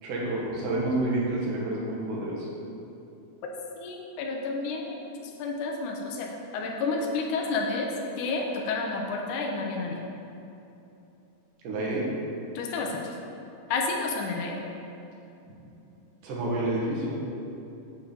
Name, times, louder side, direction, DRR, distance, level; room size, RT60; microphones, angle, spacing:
voice 1, 0.0-2.5 11.6-12.1 16.2-17.2, right 2 dB, 85° right, -4 dB, 2.8 m, -29 dB
voice 2, 3.8-5.0 5.4-6.3 6.5-7.9 8.2-10.0 12.6-13.2 13.7-14.6, left 3 dB, 80° left, 0 dB, 2.0 m, -30 dB
7.9 x 3.5 x 6.2 m, 2.8 s
omnidirectional pair, 3.7 m